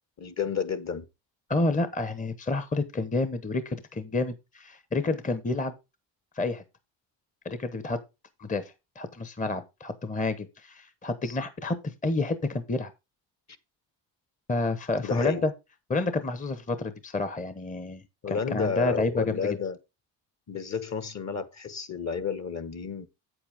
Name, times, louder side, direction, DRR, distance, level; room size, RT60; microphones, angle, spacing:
voice 1, 0.2-1.0 11.2-11.3 15.0-15.5 18.2-19.8 20.5-23.1, left 6 dB, 35° left, 1.3 m, -31 dB
voice 2, 1.5-5.7 6.3-6.6 7.4-8.0 8.4-12.9 14.5-15.5 15.9-19.6, left 3 dB, 15° left, 1.0 m, -29 dB
8.3 x 7.9 x 3.5 m
cardioid pair, 90°, 46 cm